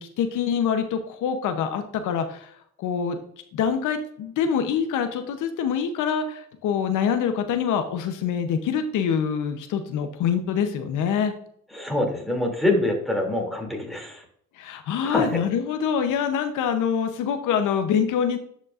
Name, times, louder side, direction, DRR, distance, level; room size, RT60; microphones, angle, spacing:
voice 1, 0.0-3.2 3.5-11.3 14.6-18.4, left 7 dB, 85° left, 7 dB, 0.8 m, -25 dB
voice 2, 11.7-14.2 15.0-15.4, left 1 dB, ahead, 0 dB, 2.6 m, -25 dB
10.5 x 5.3 x 2.4 m, 0.65 s
cardioid pair, 90°, 30 cm